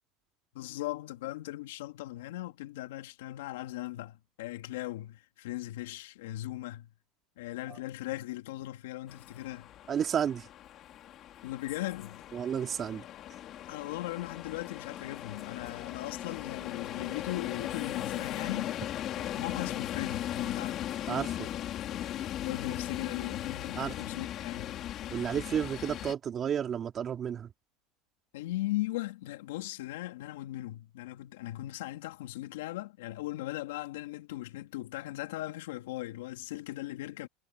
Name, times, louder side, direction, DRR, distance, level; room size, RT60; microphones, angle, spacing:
voice 1, 0.5-6.9 7.4-9.7 11.4-12.2 13.7-18.8 19.1-20.9 22.4-24.8 28.3-37.3, left 16 dB, 90° left, 3.0 m, -38 dB
sound 1, 9.1-26.1, left 12 dB, 40° left, 4.1 m, -38 dB
voice 2, 9.9-10.5 12.3-13.0 21.1-21.5 23.7-23.9 25.1-27.5, right 8 dB, 30° right, 3.4 m, -32 dB
supercardioid pair, 135°, 0 cm